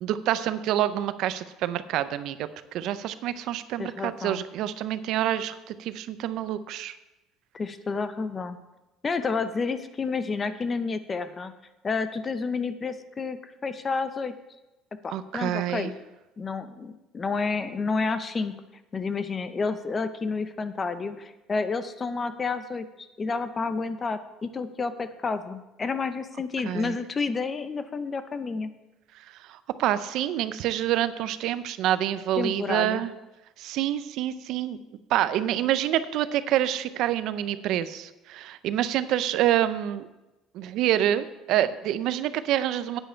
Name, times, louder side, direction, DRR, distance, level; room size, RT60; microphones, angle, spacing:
voice 1, 0.0-7.0 15.1-15.9 26.6-27.0 29.1-33.1 33.6-34.8 35.1-40.1 40.5-43.0, right 12 dB, 60° right, 13 dB, 0.5 m, -27 dB
voice 2, 3.8-4.4 7.5-8.6 9.0-11.5 11.8-14.3 15.0-15.9 16.4-18.5 18.9-28.7 32.4-33.0, left 4 dB, 20° left, 11 dB, 0.6 m, -30 dB
10.5 x 9.1 x 4.4 m, 1.0 s
cardioid pair, 150°, 0 cm